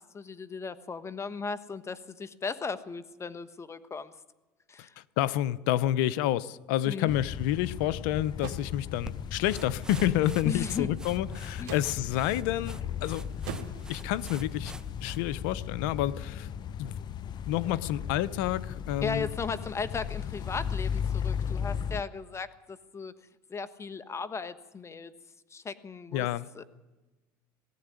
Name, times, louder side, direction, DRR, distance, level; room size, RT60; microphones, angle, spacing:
voice 1, 0.0-4.1 4.7-5.0 6.9-7.1 10.4-10.9 11.6-11.7 19.0-23.1 23.5-25.1 25.5-26.3 26.5-26.6, left 5 dB, 25° left, 14 dB, 1.4 m, -36 dB
voice 2, 5.0-13.3 13.9-14.7 15.0-16.5 16.8-17.0 17.5-19.3 26.1-26.4, left 13 dB, 80° left, 19 dB, 0.8 m, -29 dB
sound 1, 7.1-22.0, left 8 dB, 45° left, 0.7 m, -36 dB
sound 2, 8.4-8.7 9.9-10.2 11.6-11.9 13.5-13.9, right 8 dB, 80° right, 1.8 m, -40 dB
sound 3, 9.1-15.6, right 1 dB, 5° right, 1.1 m, -46 dB
18.0 x 15.5 x 9.8 m, 1.1 s
supercardioid pair, 90°, 10 cm